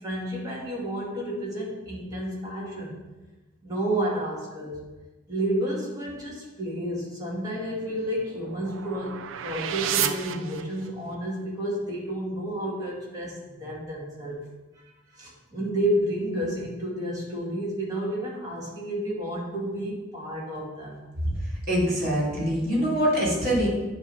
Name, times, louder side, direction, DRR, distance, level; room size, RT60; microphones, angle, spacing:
voice 1, 0.0-3.0 3.6-4.8 5.3-14.4 15.1-21.0, right 1 dB, 20° right, -5 dB, 2.1 m, -31 dB
sound 1, 7.7-11.1, right 9 dB, 70° right, 0.5 m, -32 dB
voice 2, 21.7-23.7, equal, 45° right, -4 dB, 2.8 m, -24 dB
9.5 x 3.2 x 5.6 m, 1.1 s
head